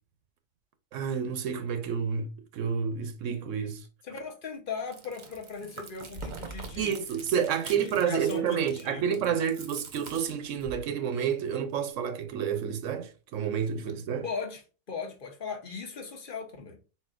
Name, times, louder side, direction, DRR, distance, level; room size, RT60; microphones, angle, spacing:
voice 1, 0.9-3.8 6.8-14.3, right 7 dB, 90° right, 1.0 m, -29 dB
voice 2, 4.0-6.9 7.6-9.4 14.2-14.6 14.9-16.8, left 5 dB, 50° left, 0.9 m, -38 dB
Chewing mastication, 4.8-10.9, right 3 dB, 45° right, 0.8 m, -44 dB
4.3 x 4.1 x 2.4 m
omnidirectional pair, 1.3 m